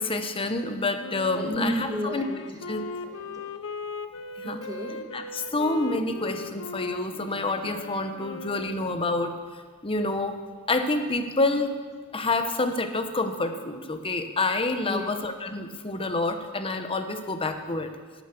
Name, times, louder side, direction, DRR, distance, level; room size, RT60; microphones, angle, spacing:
voice 1, 0.0-2.3 2.7-2.8 4.4-4.6 5.1-9.3 9.8-10.4 10.7-11.8 12.1-17.9, left 2 dB, 25° left, 7 dB, 1.0 m, -28 dB
Wind instrument woodwind instrument, 1.0-9.1, left 4 dB, 65° left, 0.7 m, -38 dB
voice 2, 1.3-2.6 3.0-3.4 4.4-5.0 14.8-15.1, equal, 15° right, 0 dB, 2.2 m, -33 dB
11.5 x 10.5 x 6.8 m, 1.5 s
head